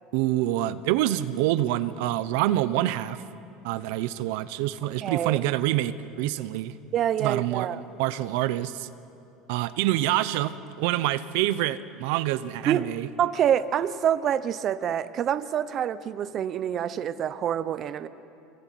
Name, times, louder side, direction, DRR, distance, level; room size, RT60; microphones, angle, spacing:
voice 1, 0.1-3.2 3.6-6.7 7.2-8.9 9.5-13.1, right 14 dB, 75° right, 13 dB, 0.9 m, -26 dB
voice 2, 5.0-5.4 6.9-7.8 12.7-12.9 13.2-18.1, right 9 dB, 35° right, 13 dB, 0.8 m, -26 dB
26.0 x 22.5 x 9.4 m, 2.8 s
cardioid pair, 145°, 0 cm